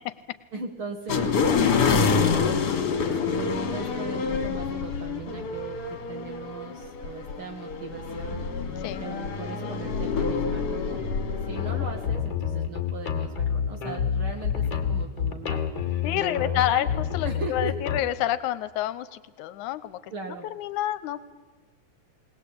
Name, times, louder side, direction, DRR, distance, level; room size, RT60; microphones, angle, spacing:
voice 1, 0.5-1.4 2.1-2.8 3.3-8.5 9.0-11.0 11.4-15.6 16.1-16.9 17.3-17.8 20.1-20.5, right 4 dB, 50° right, 3 dB, 2.0 m, -38 dB
sound 1, 1.1-12.1, left 5 dB, 60° left, 2.8 m, -27 dB
sound 2, 11.6-18.0, left 8 dB, 40° left, 2.4 m, -28 dB
voice 2, 16.0-20.1 20.5-21.2, left 13 dB, 80° left, 15 dB, 2.3 m, -28 dB
20.0 x 20.0 x 8.6 m, 1.3 s
omnidirectional pair, 3.5 m